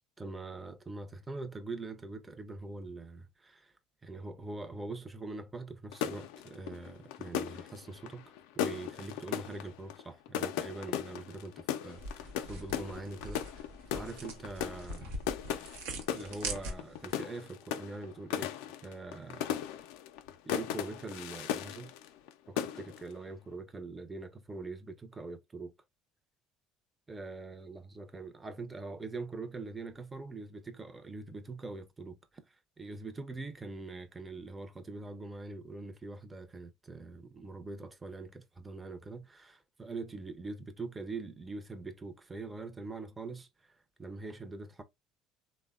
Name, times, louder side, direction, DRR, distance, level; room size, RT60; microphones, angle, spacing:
voice 1, 0.2-3.7 4.0-15.2 15.6-15.8 16.1-18.5 18.8-19.6 20.4-21.9 22.5-25.7 27.1-32.2 32.5-44.8, right 3 dB, 20° right, 0.5 m, -43 dB
sound 1, 5.9-22.3 22.6-23.1, left 10 dB, 80° left, 0.3 m, -37 dB
sound 2, 11.9-17.1, right 2 dB, 85° right, 0.7 m, -43 dB
3.2 x 2.1 x 2.3 m
supercardioid pair, 80°, 0 cm